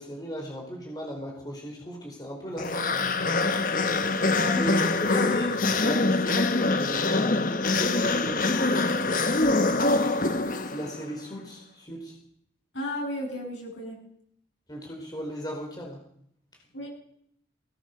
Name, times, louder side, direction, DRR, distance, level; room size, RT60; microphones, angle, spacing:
voice 1, 0.0-3.2 4.5-10.3 10.7-12.1 14.7-16.0, equal, 20° left, 0 dB, 4.7 m, -37 dB
sound 1, 2.6-11.0, left 3 dB, 45° left, 1.1 m, -24 dB
voice 2, 4.2-4.7 12.7-14.0 16.7-16.9, left 1 dB, 85° left, 0 dB, 7.8 m, -33 dB
20.5 x 18.5 x 6.9 m, 0.70 s
head